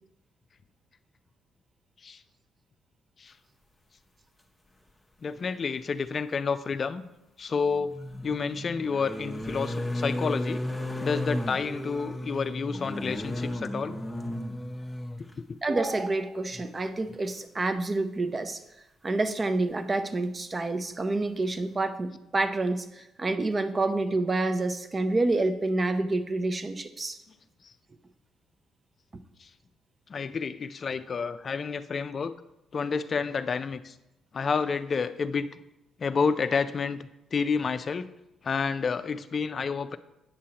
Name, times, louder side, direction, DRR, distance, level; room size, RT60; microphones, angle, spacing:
voice 1, 5.2-7.0 7.4-7.9 8.2-10.6 11.0-14.0 15.5-15.6 27.6-27.7 29.4-29.5 30.1-32.4 32.7-34.0 34.3-35.6 36.0-38.1 38.4-40.0, left 5 dB, 45° left, 11 dB, 0.4 m, -29 dB
sound 1, 5.4-5.5 7.7-15.3 16.5-16.6 17.0-17.1, left 1 dB, 5° left, 0.7 m, -34 dB
voice 2, 15.6-18.6 19.0-27.2, right 2 dB, 30° right, 10 dB, 0.5 m, -28 dB
8.6 x 6.1 x 2.9 m, 0.91 s
cardioid pair, 90°, 0 cm